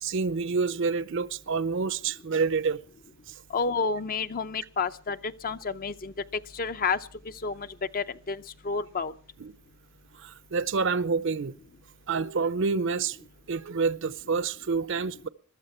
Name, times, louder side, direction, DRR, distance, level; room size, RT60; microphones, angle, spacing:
voice 1, 0.0-2.8 9.4-9.5 10.2-11.5 12.1-13.2 13.5-15.3, right 4 dB, 60° right, 0.6 m, -28 dB
voice 2, 3.5-7.0 7.4-7.7 7.9-9.1, left 5 dB, 45° left, 0.6 m, -30 dB
21.5 x 13.0 x 4.4 m
head